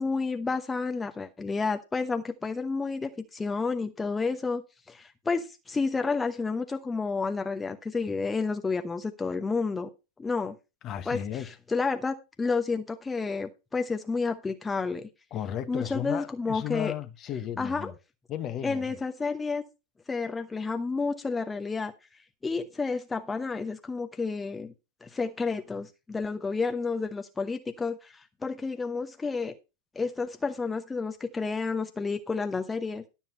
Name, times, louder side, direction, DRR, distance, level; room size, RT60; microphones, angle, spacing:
voice 1, 0.0-9.9 10.2-10.6 11.1-15.1 15.7-16.9 17.6-17.9 18.6-19.6 20.1-21.9 22.4-24.7 25.0-29.5 29.9-33.0, left 4 dB, 10° left, 0.9 m, -30 dB
voice 2, 10.8-11.5 15.3-17.9 18.3-18.9, left 10 dB, 35° left, 1.1 m, -34 dB
12.0 x 7.2 x 4.2 m
figure-of-eight pair, 90°, 0 cm